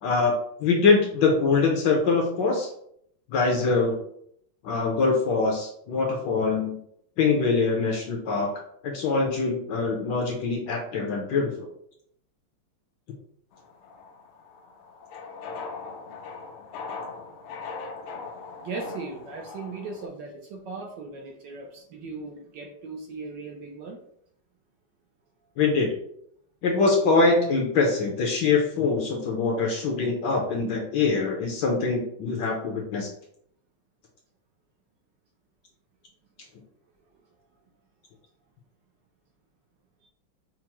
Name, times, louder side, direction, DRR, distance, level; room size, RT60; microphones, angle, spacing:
voice 1, 0.0-0.3 0.6-2.7 3.3-4.0 4.6-6.8 7.2-8.5 8.8-11.5 25.6-25.9 26.6-33.1, left 4 dB, 70° left, 0 dB, 1.2 m, -23 dB
sound 1, 13.5-20.1, left 4 dB, 85° left, 1.5 m, -40 dB
voice 2, 18.4-24.0, right 4 dB, 70° right, 1 dB, 1.1 m, -38 dB
5.7 x 2.0 x 2.9 m, 0.69 s
omnidirectional pair, 2.4 m